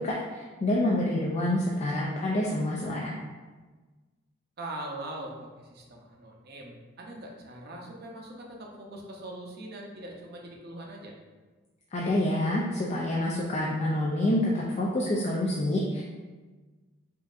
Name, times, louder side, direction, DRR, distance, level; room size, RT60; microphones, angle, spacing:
voice 1, 0.0-3.1 11.9-16.0, left 1 dB, 35° left, -4 dB, 0.3 m, -27 dB
voice 2, 4.6-11.1, right 1 dB, 50° right, -1 dB, 0.6 m, -41 dB
5.1 x 2.6 x 2.5 m, 1.3 s
head